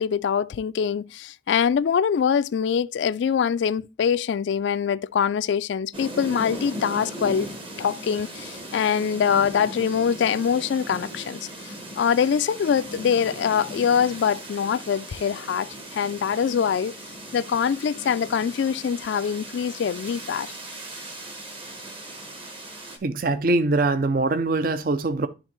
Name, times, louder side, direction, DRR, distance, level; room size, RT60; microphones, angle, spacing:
voice 1, 0.0-7.5 7.8-16.9 17.3-20.5, left 7 dB, 70° left, 0.3 m, -24 dB
sound 1, 5.9-23.0, right 1 dB, 30° right, 1.1 m, -38 dB
voice 2, 23.0-25.3, right 2 dB, 50° right, 0.4 m, -23 dB
10.5 x 3.6 x 3.0 m
head